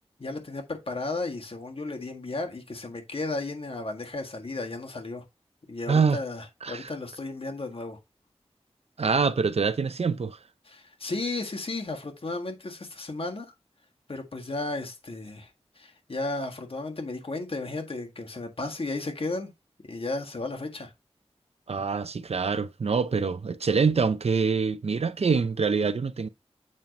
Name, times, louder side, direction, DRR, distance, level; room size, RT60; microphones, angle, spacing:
voice 1, 0.2-5.2 5.7-8.0 10.7-13.5 14.1-15.5 15.8-19.5 19.9-20.9, left 2 dB, 60° left, 1.6 m, -34 dB
voice 2, 5.9-6.2 6.6-6.9 9.0-10.4 21.7-26.3, right 5 dB, 70° right, 0.5 m, -25 dB
7.4 x 2.9 x 5.2 m
wide cardioid pair, 70°, 11 cm